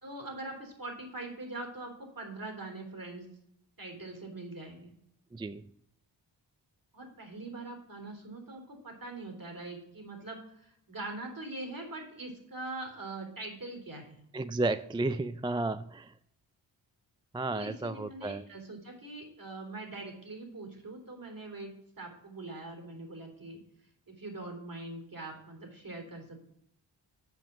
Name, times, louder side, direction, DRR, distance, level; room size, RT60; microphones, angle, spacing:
voice 1, 0.0-3.3 3.8-4.9 6.9-14.2 17.5-23.6 24.1-26.4, right 2 dB, 45° right, 3 dB, 3.5 m, -43 dB
voice 2, 5.3-5.7 14.3-16.1 17.3-18.4, right 2 dB, 10° right, 12 dB, 0.3 m, -32 dB
7.4 x 5.4 x 7.3 m, 0.73 s
cardioid pair, 50°, 46 cm